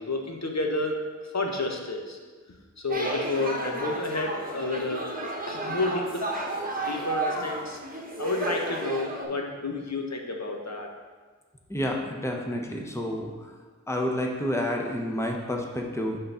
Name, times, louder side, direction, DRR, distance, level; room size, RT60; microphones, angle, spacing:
voice 1, 0.0-2.2 2.8-5.1 5.5-6.5 6.8-7.8 8.2-10.9, left 2 dB, 60° left, 2 dB, 1.0 m, -30 dB
sound 1, 2.9-9.3, right 2 dB, 30° right, 1.1 m, -32 dB
voice 2, 11.7-13.5 13.9-16.2, left 1 dB, 10° left, 1 dB, 0.9 m, -29 dB
6.7 x 3.8 x 5.5 m, 1.4 s
wide cardioid pair, 45°, 31 cm